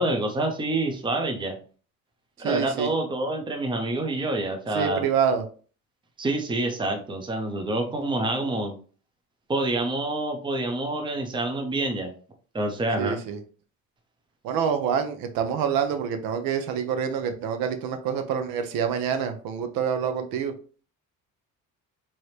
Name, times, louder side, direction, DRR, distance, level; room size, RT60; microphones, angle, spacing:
voice 1, 0.0-1.6 2.4-5.0 6.2-8.7 9.5-12.1 12.5-13.2, right 2 dB, 15° right, 3 dB, 0.7 m, -27 dB
voice 2, 2.4-2.9 4.7-5.4 13.0-13.4 14.4-20.5, right 7 dB, 85° right, 7 dB, 0.9 m, -26 dB
4.8 x 2.9 x 3.1 m, 0.40 s
cardioid pair, 145°, 34 cm